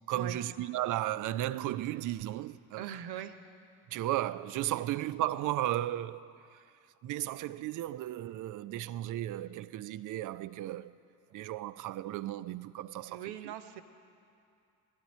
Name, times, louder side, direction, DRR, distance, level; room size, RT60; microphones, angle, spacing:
voice 1, 0.1-3.0 3.9-6.6 7.0-11.0 11.3-13.5, right 14 dB, 45° right, 0.5 m, -35 dB
voice 2, 2.8-3.4 13.1-13.8, right 10 dB, 65° right, 0.9 m, -40 dB
17.0 x 12.5 x 4.3 m
hypercardioid pair, 55°, 43 cm